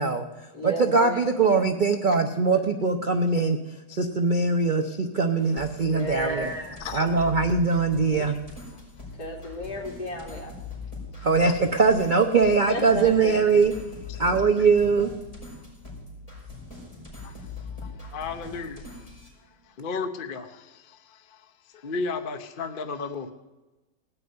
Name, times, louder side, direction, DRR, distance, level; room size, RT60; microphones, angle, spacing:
voice 1, 0.0-3.6 3.9-8.4 11.2-13.7 14.2-15.1, right 4 dB, 55° right, 6 dB, 0.5 m, -22 dB
voice 2, 0.5-1.2 5.8-6.6 9.2-10.5 12.7-13.6, left 1 dB, 65° left, -3 dB, 3.6 m, -33 dB
sound 1, 5.6-19.3, left 3 dB, 20° left, 5.0 m, -41 dB
voice 3, 18.0-18.8 19.8-21.2 21.8-23.3, left 4 dB, 45° left, 7 dB, 0.7 m, -33 dB
17.5 x 6.0 x 9.3 m, 1.1 s
omnidirectional pair, 1.9 m